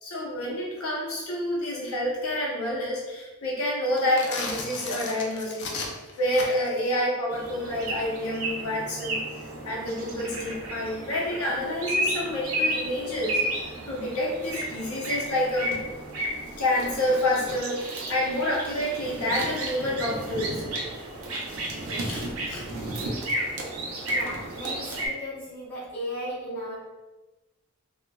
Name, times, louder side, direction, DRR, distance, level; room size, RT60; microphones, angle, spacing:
voice 1, 0.0-5.7 6.2-9.2 9.6-13.5 13.9-15.8 16.6-20.6 22.0-22.6, left 1 dB, 80° left, -4 dB, 0.7 m, -28 dB
sound 1, 3.9-6.8, left 3 dB, 50° left, 0.4 m, -35 dB
sound 2, 7.3-25.1, right 1 dB, 75° right, 0.5 m, -32 dB
voice 2, 21.8-22.2 24.1-26.8, equal, 10° left, -9 dB, 0.7 m, -36 dB
3.0 x 2.1 x 2.2 m, 1.1 s
head